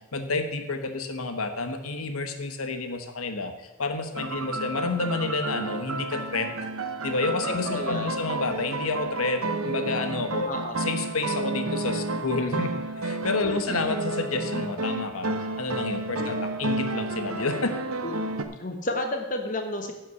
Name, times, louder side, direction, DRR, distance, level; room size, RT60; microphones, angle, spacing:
voice 1, 0.1-6.5 7.0-10.5 10.8-12.7 13.0-15.3 15.6-17.7, left 3 dB, 85° left, 7 dB, 1.2 m, -29 dB
sound 1, 4.2-18.4, right 2 dB, 85° right, 0.8 m, -31 dB
voice 2, 7.6-8.3 10.4-10.8 13.5-13.9 16.2-16.3 18.0-18.1 18.6-19.9, left 1 dB, 35° left, 5 dB, 1.1 m, -32 dB
11.0 x 5.7 x 6.9 m, 1.1 s
head